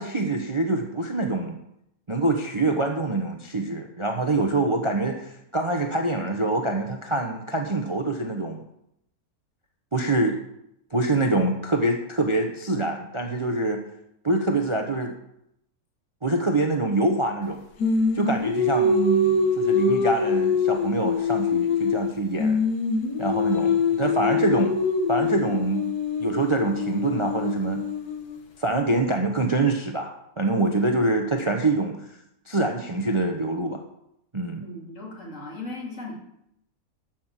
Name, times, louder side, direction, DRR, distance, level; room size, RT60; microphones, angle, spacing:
voice 1, 0.0-1.6 2.1-8.6 9.9-10.4 10.9-13.8 14.2-15.1 16.2-17.6 18.1-22.6 23.2-24.7 25.1-25.8 26.2-27.8 28.6-32.1 32.5-33.8 34.3-34.6, right 2 dB, 25° right, 4 dB, 0.8 m, -25 dB
Singing, 17.8-22.1 22.4-28.4, left 4 dB, 80° left, 1.8 m, -24 dB
voice 2, 34.6-36.1, left 2 dB, 50° left, -2 dB, 3.2 m, -37 dB
12.0 x 6.2 x 7.5 m, 0.77 s
omnidirectional pair, 1.6 m